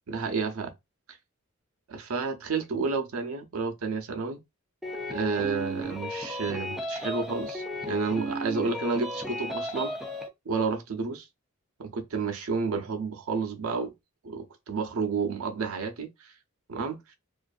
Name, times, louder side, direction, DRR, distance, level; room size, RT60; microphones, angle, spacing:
voice 1, 0.1-0.7 1.9-4.4 5.1-9.9 10.5-11.3 11.8-13.9 14.2-16.3 16.7-17.0, right 4 dB, 70° right, 0.6 m, -30 dB
sound 1, 4.8-10.3, left 1 dB, ahead, 0.4 m, -34 dB
2.5 x 2.3 x 2.4 m
head